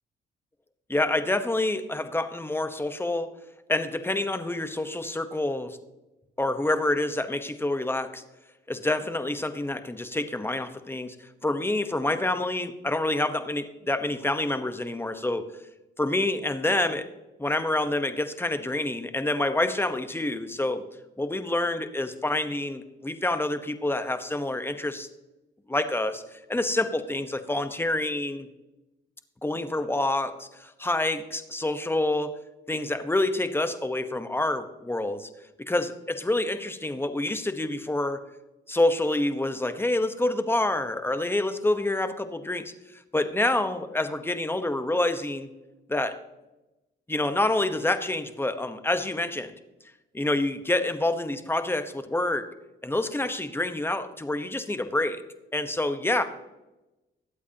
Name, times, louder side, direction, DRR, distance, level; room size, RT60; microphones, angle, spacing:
voice 1, 0.9-3.3 3.7-5.8 6.4-8.2 8.7-11.1 11.4-15.4 16.0-17.1 17.4-20.8 21.2-25.1 25.7-26.2 26.5-28.5 29.4-32.3 32.7-35.3 35.6-38.2 38.7-42.7 43.1-45.5 45.9-46.2 47.1-49.5 50.1-52.5 52.8-55.2 55.5-56.2, left 2 dB, 10° left, 9 dB, 1.0 m, -27 dB
21.5 x 8.2 x 2.9 m, 1.0 s
cardioid pair, 90°, 20 cm